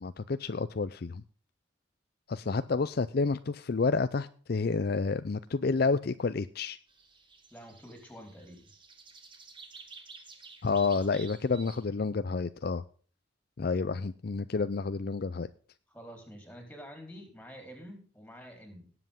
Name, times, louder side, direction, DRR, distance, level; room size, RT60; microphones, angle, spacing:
voice 1, 0.0-1.2 2.3-6.8 10.6-12.8 13.6-15.5, left 4 dB, 50° left, 13 dB, 0.5 m, -29 dB
sound 1, 6.9-11.8, right 4 dB, 25° right, 1.9 m, -51 dB
voice 2, 7.5-8.7 15.9-18.9, equal, 5° left, 4 dB, 3.9 m, -48 dB
18.5 x 7.9 x 3.6 m, 0.42 s
head